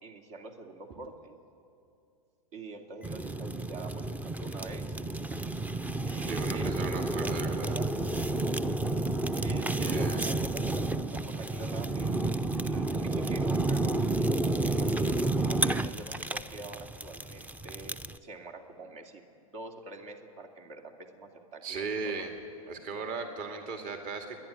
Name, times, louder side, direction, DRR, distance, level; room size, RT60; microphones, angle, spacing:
voice 1, 0.0-1.3 2.5-5.0 6.1-7.9 9.3-10.8 11.1-14.1 14.8-19.3 19.5-22.1, right 3 dB, 60° right, 3 dB, 2.6 m, -45 dB
Fire, 3.0-18.2, right 2 dB, 10° right, 0.6 m, -30 dB
voice 2, 6.3-7.8 9.5-10.3 21.6-22.3 22.7-24.4, right 4 dB, 45° right, 4 dB, 2.4 m, -37 dB
30.0 x 11.5 x 9.9 m, 2.5 s
hypercardioid pair, 105°, 19 cm